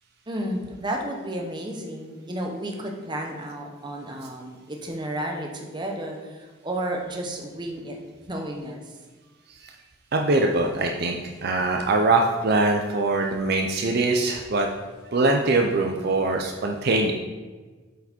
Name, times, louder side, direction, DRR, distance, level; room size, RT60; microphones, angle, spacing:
voice 1, 0.3-8.0 8.3-8.9, right 1 dB, 20° right, 1 dB, 0.8 m, -32 dB
voice 2, 10.1-14.7 15.1-17.1, right 2 dB, 50° right, 2 dB, 0.5 m, -23 dB
8.0 x 4.7 x 4.3 m, 1.4 s
head